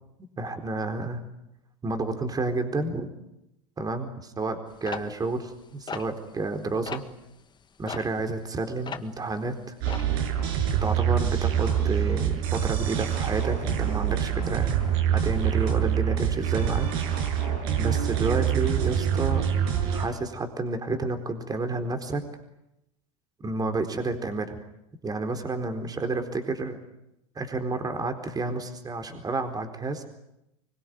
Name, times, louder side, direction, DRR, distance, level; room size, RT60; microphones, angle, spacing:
voice 1, 0.2-1.2 1.8-3.1 3.8-7.0 7.8-9.6 10.8-14.8 15.1-16.9 17.4-17.5 17.8-19.4 19.9-22.2 23.4-24.6 25.0-26.8 27.4-30.1, right 3 dB, 20° right, 6 dB, 4.2 m, -30 dB
sound 1, 4.9-6.6 6.9-7.1 7.9-9.3 9.5-10.2, left 6 dB, 25° left, 1.8 m, -37 dB
sound 2, 9.8-20.1, right 9 dB, 60° right, 7.2 m, -25 dB
24.5 x 23.5 x 9.5 m, 0.86 s
hypercardioid pair, 90°, 18 cm